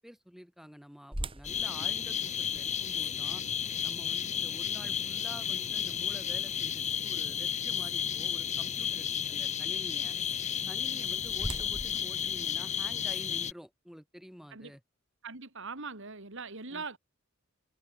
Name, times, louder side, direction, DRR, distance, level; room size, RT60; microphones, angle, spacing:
voice 1, 0.0-3.4 3.8-10.1 10.7-14.8 16.7-16.8, equal, ahead, 5.6 m, -49 dB
sound 1, 1.1-7.1 7.6-7.7 8.3-8.5 10.6-13.3, right 1 dB, 25° right, 2.7 m, -44 dB
sound 2, 1.4-13.5, left 8 dB, 35° left, 0.9 m, -33 dB
voice 2, 15.2-17.0, right 4 dB, 65° right, 2.7 m, -41 dB
head